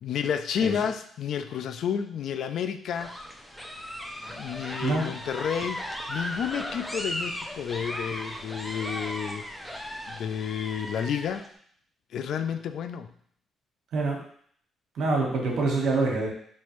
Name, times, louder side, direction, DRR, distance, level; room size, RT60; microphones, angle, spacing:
voice 1, 0.0-3.1 4.3-11.5 12.1-13.1, left 8 dB, 70° left, 9 dB, 0.3 m, -31 dB
sound 1, 2.9-11.5, equal, 5° left, 0.6 m, -37 dB
voice 2, 14.9-16.3, right 3 dB, 70° right, -1 dB, 1.2 m, -25 dB
4.4 x 2.9 x 3.0 m, 0.62 s
cardioid pair, 90°, 0 cm